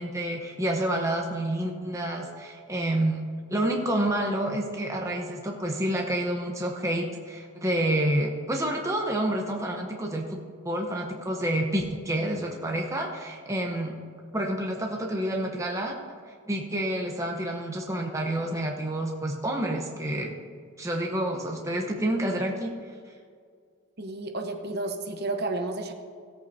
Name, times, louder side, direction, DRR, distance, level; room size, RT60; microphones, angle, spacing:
voice 1, 0.0-3.2 3.5-10.4 10.6-13.9 14.3-16.0 16.5-20.3 20.8-22.7, right 1 dB, 15° right, 0 dB, 0.9 m, -28 dB
voice 2, 24.0-25.9, right 2 dB, 45° right, 4 dB, 1.0 m, -31 dB
17.0 x 8.5 x 2.8 m, 2.1 s
head